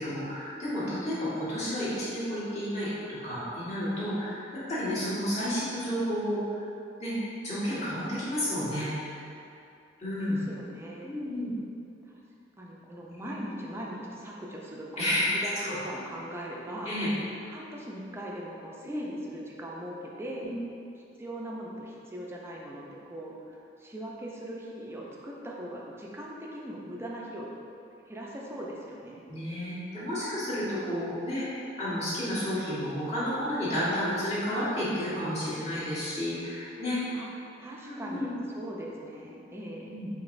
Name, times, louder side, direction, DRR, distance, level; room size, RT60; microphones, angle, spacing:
voice 1, 0.0-6.4 7.0-7.1 7.4-9.3 10.0-10.4 11.0-11.5 13.2-13.3 15.0-15.8 16.8-17.1 18.8-19.0 20.4-20.5 29.3-31.4 31.8-37.0 37.8-38.3 39.9-40.1, equal, 35° left, -12 dB, 1.5 m, -31 dB
voice 2, 10.2-11.2 12.1-12.2 12.6-17.0 17.4-20.6 21.2-27.5 28.1-29.2 37.1-37.3 37.6-40.0, right 1 dB, 15° right, -3 dB, 0.4 m, -40 dB
5.0 x 2.9 x 2.5 m, 2.6 s
head